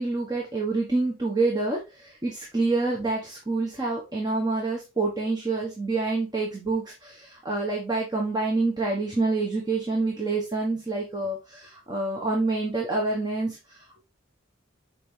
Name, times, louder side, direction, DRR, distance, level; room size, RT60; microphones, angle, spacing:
voice 1, 0.0-14.0, right 3 dB, 20° right, -1 dB, 1.3 m, -27 dB
6.9 x 4.8 x 3.4 m, 0.26 s
head